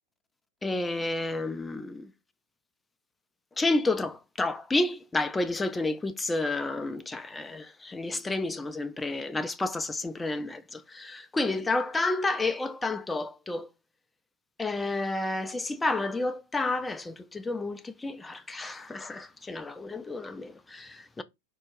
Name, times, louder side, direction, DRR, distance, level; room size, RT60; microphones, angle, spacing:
voice 1, 0.6-2.1 3.6-13.7 14.6-21.2, left 2 dB, 10° left, 0.4 m, -30 dB
4.5 x 2.3 x 4.7 m
figure-of-eight pair, 90°, 0 cm